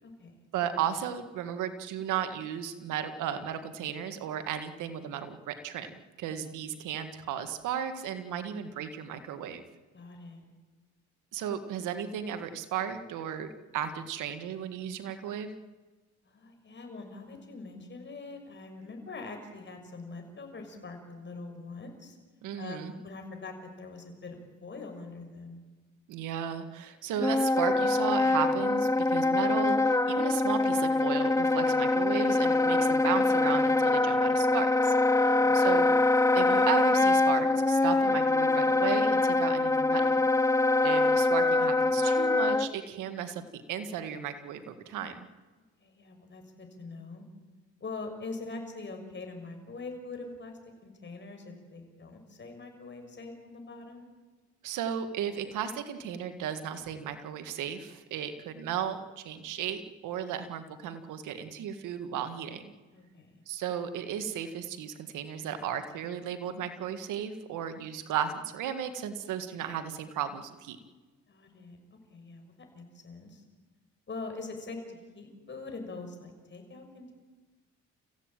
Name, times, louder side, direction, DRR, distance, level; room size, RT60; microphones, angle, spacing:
voice 1, 0.0-0.4 9.9-10.4 16.2-22.2 22.6-25.6 35.3-35.7 45.8-47.2 47.8-54.1 62.9-63.4 71.3-71.8 72.1-72.4 72.7-73.4 74.1-77.1, left 3 dB, 40° left, 4 dB, 6.4 m, -43 dB
voice 2, 0.5-5.9 6.2-9.6 11.3-15.5 22.4-22.9 26.1-35.9 36.3-40.1 40.4-40.5 40.8-45.2 54.6-62.7 63.5-70.8, right 8 dB, 90° right, 9 dB, 1.8 m, -35 dB
Wind instrument woodwind instrument, 27.2-42.7, left 2 dB, 10° left, 0.8 m, -24 dB
29.5 x 16.0 x 9.0 m, 1.3 s
cardioid pair, 90°, 30 cm